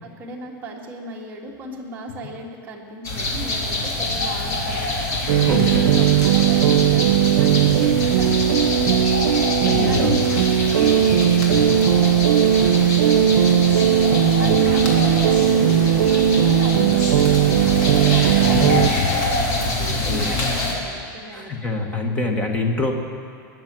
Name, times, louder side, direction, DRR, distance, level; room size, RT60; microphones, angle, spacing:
voice 1, 0.0-21.6, right 1 dB, 15° right, -3 dB, 1.8 m, -36 dB
sound 1, 3.0-20.7, left 2 dB, 45° left, 2.8 m, -25 dB
sound 2, 5.3-18.9, right 10 dB, 70° right, 0.7 m, -17 dB
voice 2, 5.4-5.9 7.6-7.8 9.6-10.4 11.5-11.8 14.4-14.7 18.5-19.0 19.9-20.3 21.3-22.9, left 3 dB, 15° left, 2 dB, 1.2 m, -26 dB
19.5 x 7.3 x 7.5 m, 2.2 s
supercardioid pair, 170°, 11 cm